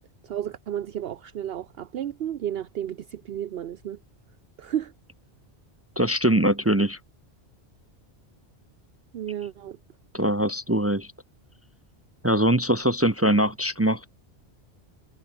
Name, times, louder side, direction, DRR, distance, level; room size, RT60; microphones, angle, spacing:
voice 1, 0.2-4.0 4.6-4.9 9.1-9.8, right 10 dB, 65° right, 0.9 m, -32 dB
voice 2, 6.0-7.0 10.1-11.1 12.2-14.0, right 1 dB, 15° right, 0.6 m, -22 dB
omnidirectional pair, 1.1 m